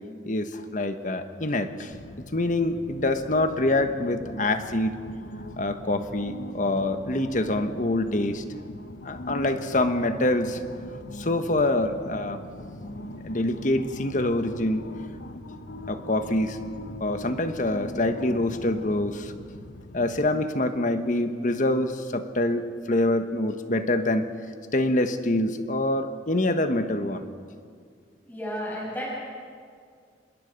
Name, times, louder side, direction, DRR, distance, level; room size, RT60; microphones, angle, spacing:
voice 1, 0.2-1.9 2.3-5.0 5.6-8.4 9.0-10.6 11.1-12.4 13.2-14.9 15.9-16.6 17.0-19.3 19.9-24.3 24.7-27.3, left 1 dB, 45° left, 8 dB, 1.3 m, -25 dB
sound 1, 1.9-20.3, left 1 dB, 85° left, 1.1 m, -41 dB
voice 2, 28.2-29.1, equal, 10° left, -5 dB, 6.2 m, -33 dB
26.5 x 21.5 x 5.3 m, 2.1 s
head